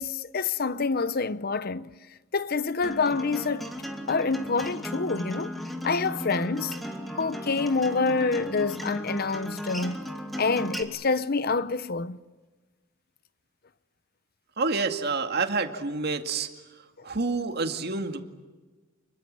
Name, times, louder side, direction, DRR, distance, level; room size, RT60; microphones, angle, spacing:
voice 1, 0.0-1.9 2.3-3.7 4.1-5.6 5.8-6.8 7.1-10.1 10.4-12.2 17.0-17.1, left 4 dB, 50° left, 0.8 m, -27 dB
Acoustic guitar, 2.8-10.8, equal, ahead, 2.5 m, -36 dB
voice 2, 14.6-16.5 17.0-18.2, right 4 dB, 50° right, 2.2 m, -28 dB
29.5 x 22.0 x 7.7 m
head